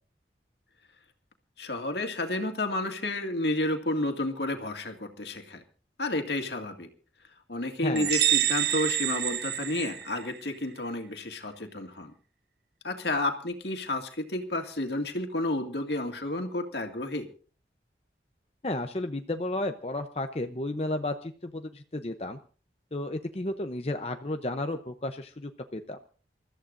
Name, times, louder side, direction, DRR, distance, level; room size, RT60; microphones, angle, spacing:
voice 1, 1.6-5.6 6.0-6.9 7.5-12.1 12.8-17.3, left 2 dB, 75° left, 5 dB, 2.2 m, -31 dB
sound 1, 8.0-10.5, right 11 dB, 70° right, 1.3 m, -27 dB
voice 2, 18.6-22.4 22.9-26.0, left 1 dB, 35° left, 6 dB, 0.7 m, -33 dB
28.0 x 14.0 x 2.6 m, 0.40 s
head